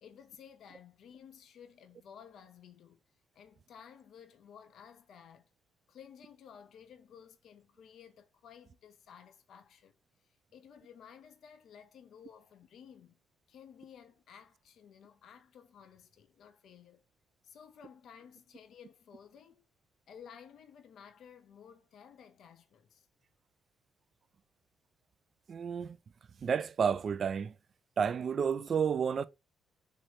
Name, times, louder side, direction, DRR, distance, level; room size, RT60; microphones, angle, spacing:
voice 1, 0.0-3.0 3.3-5.5 5.9-10.0 10.2-13.2 13.5-17.0 17.4-19.6 20.1-23.1, left 8 dB, 70° left, 0.7 m, -55 dB
voice 2, 25.5-26.0 26.4-27.5 28.0-29.2, right 7 dB, 50° right, 0.3 m, -31 dB
3.1 x 3.1 x 4.2 m
cardioid pair, 90°, 0 cm